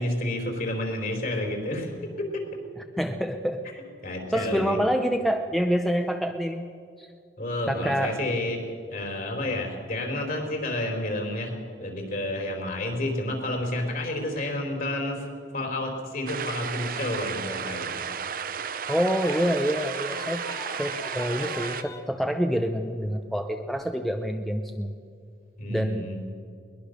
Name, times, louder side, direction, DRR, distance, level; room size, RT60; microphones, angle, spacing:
voice 1, 0.0-2.4 4.0-4.8 7.4-8.6 8.9-15.3 15.5-17.9 25.6-26.2, left 1 dB, 50° left, 3 dB, 4.3 m, -30 dB
voice 2, 3.0-3.7 4.3-6.6 7.0-7.1 7.7-8.2 18.9-20.4 20.8-24.9 25.7-26.1, equal, ahead, 5 dB, 0.7 m, -27 dB
sound 1, 16.3-21.8, right 6 dB, 50° right, 0.8 m, -33 dB
sound 2, 19.1-22.1 23.8-23.9, left 2 dB, 15° left, 1.4 m, -42 dB
21.5 x 21.0 x 6.7 m, 2.3 s
head